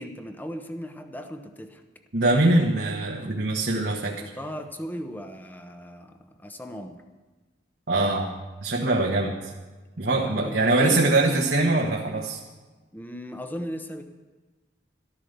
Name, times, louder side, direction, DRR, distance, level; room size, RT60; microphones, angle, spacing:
voice 1, 0.0-1.8 4.2-7.0 10.1-11.1 12.9-14.0, equal, 10° left, 6 dB, 0.9 m, -37 dB
voice 2, 2.1-4.1 7.9-8.3 8.6-9.4 10.0-12.4, right 2 dB, 70° right, -1 dB, 1.3 m, -22 dB
13.0 x 12.0 x 6.7 m, 1.3 s
head